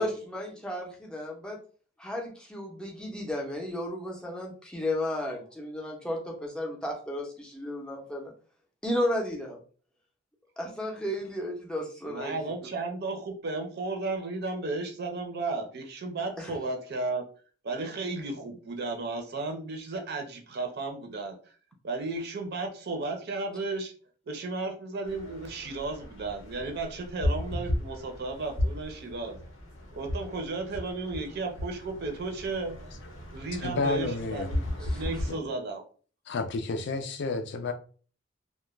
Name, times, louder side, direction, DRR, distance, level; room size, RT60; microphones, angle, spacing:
voice 1, 0.0-1.6 2.0-8.3 8.8-9.6 10.6-12.4 16.4-16.5 34.9-35.1, left 1 dB, 5° left, 0.6 m, -33 dB
voice 2, 12.0-17.2 17.6-21.4 21.8-23.9 24.3-29.4 29.9-32.8 33.3-35.8, right 3 dB, 55° right, 0.6 m, -34 dB
sound 1, 25.0-35.3, left 1 dB, 85° left, 0.8 m, -35 dB
voice 3, 33.6-34.5 35.3-35.4 36.3-37.7, left 3 dB, 60° left, 0.4 m, -30 dB
2.3 x 2.1 x 3.0 m
head